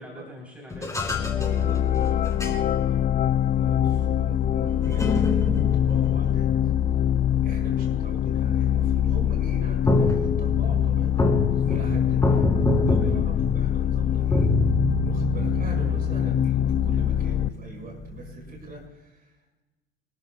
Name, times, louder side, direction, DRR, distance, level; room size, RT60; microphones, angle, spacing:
voice 1, 0.0-1.8 11.4-11.8 12.8-13.2, left 1 dB, 5° right, -2 dB, 3.7 m, -45 dB
sound 1, 0.7-3.5 4.2-7.9 8.2-8.7 9.3-18.8, left 1 dB, 10° left, 2.2 m, -28 dB
sound 2, 1.0-17.5, left 10 dB, 25° left, 0.4 m, -24 dB
voice 2, 1.5-1.8 2.2-3.0 3.5-6.5 7.4-11.2 11.7-12.5 12.9-14.5 15.0-19.3, right 2 dB, 30° right, 1 dB, 5.5 m, -42 dB
26.5 x 13.0 x 2.3 m, 1.1 s
hypercardioid pair, 80°, 29 cm